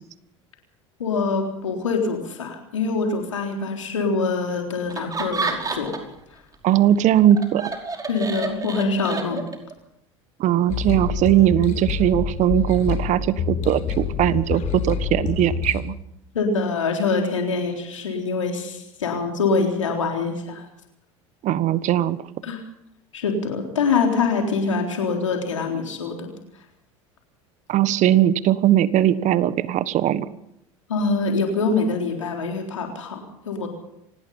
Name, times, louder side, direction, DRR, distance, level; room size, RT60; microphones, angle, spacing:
voice 1, 1.0-5.9 8.1-9.4 16.3-20.6 22.4-22.6 23.1-26.3 30.9-33.7, left 4 dB, 90° left, 3 dB, 3.8 m, -24 dB
Laughter, 4.9-6.2 6.5-9.7, right 4 dB, 25° right, 5.2 m, -30 dB
voice 2, 6.6-7.7 10.4-15.9 21.4-22.2 27.7-30.3, right 12 dB, 50° right, 15 dB, 1.5 m, -19 dB
sound 1, 10.7-15.8, left 6 dB, 50° left, 5.3 m, -27 dB
25.5 x 18.5 x 5.7 m, 0.79 s
hypercardioid pair, 75°, 16 cm